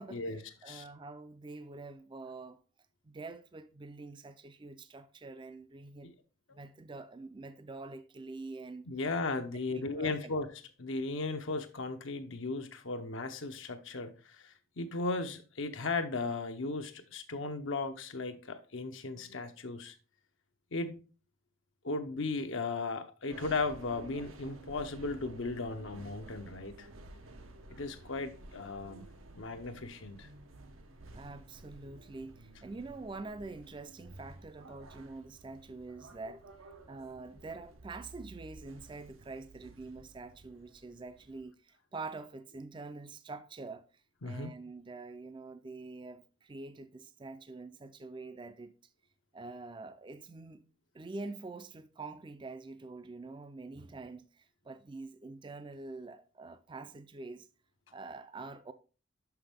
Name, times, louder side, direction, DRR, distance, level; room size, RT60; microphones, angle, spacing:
voice 1, 0.0-2.6 3.0-6.1 6.5-8.9 9.7-10.3 31.1-36.4 36.9-43.8 44.2-48.7 49.3-50.6 50.9-57.5 57.9-58.7, right 3 dB, 25° right, 0.3 m, -46 dB
voice 2, 8.9-10.5 10.8-19.9 20.7-21.0 21.8-26.9 27.7-29.1 29.3-30.3 44.2-44.5, left 3 dB, 70° left, 0.7 m, -36 dB
sound 1, 23.3-41.4, right 2 dB, 90° right, 0.9 m, -53 dB
5.8 x 5.8 x 3.4 m
head